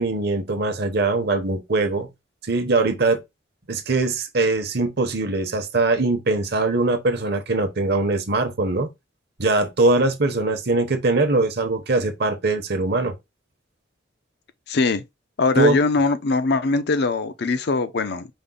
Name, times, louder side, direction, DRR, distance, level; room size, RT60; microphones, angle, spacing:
voice 1, 0.0-2.1 2.4-3.2 3.7-8.9 9.4-13.1 15.6-15.8, right 2 dB, 55° right, 0.9 m, -21 dB
voice 2, 14.7-15.0 15.4-18.3, left 3 dB, 60° left, 0.6 m, -21 dB
5.2 x 2.2 x 3.8 m
head